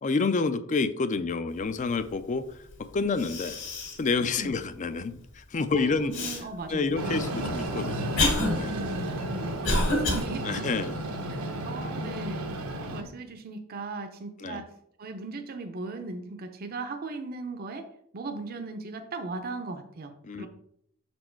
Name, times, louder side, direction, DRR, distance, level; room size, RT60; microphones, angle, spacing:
voice 1, 0.0-2.6 2.9-3.6 4.0-6.1 6.7-8.3 8.6-8.8 10.4-11.0 12.8-13.1 14.4-14.6 20.2-20.5, left 4 dB, 35° left, 12 dB, 0.4 m, -29 dB
Cough, 2.7-2.8 3.2-4.1 4.5-4.6 6.1-6.4 7.2-10.2, left 2 dB, 55° left, 1.8 m, -28 dB
voice 2, 5.7-7.3 8.7-10.7 11.3-14.7 15.0-17.9 18.1-20.5, right 3 dB, 45° right, 7 dB, 0.6 m, -38 dB
Train, 7.0-13.0, right 1 dB, 85° right, 0.9 m, -33 dB
6.2 x 4.3 x 4.5 m, 0.71 s
head